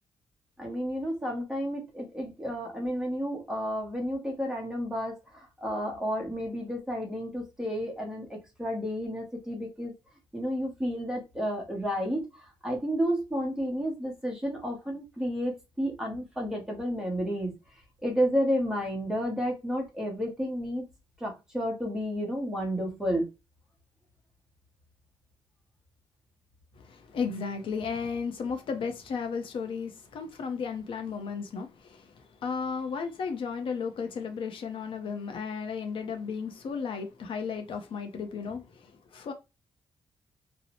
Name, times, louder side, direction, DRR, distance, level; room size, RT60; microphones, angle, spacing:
voice 1, 0.6-5.1 5.6-9.9 10.3-12.2 12.6-17.6 18.0-20.8 21.2-23.3, equal, 5° right, 0.8 m, -31 dB
voice 2, 26.8-39.3, left 5 dB, 65° left, 0.5 m, -34 dB
2.7 x 2.0 x 2.8 m
wide cardioid pair, 155°, 9 cm